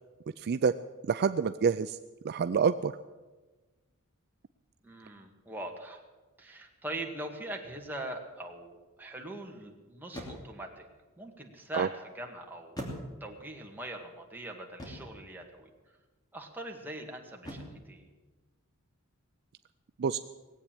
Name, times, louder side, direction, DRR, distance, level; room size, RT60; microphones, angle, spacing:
voice 1, 0.4-0.7 1.0-2.0 2.2-2.9 11.7-11.9 20.0-20.2, right 6 dB, 50° right, 11 dB, 0.4 m, -27 dB
voice 2, 4.8-6.0 6.4-10.8 11.2-11.9 12.1-12.9 13.2-15.7 16.3-18.1, right 1 dB, 10° right, 1 dB, 1.9 m, -42 dB
sound 1, 7.7-8.0 10.1-10.7 12.8-13.5 14.8-15.2 17.4-17.9, equal, 20° left, 2.9 m, -42 dB
19.0 x 8.4 x 8.9 m, 1.2 s
head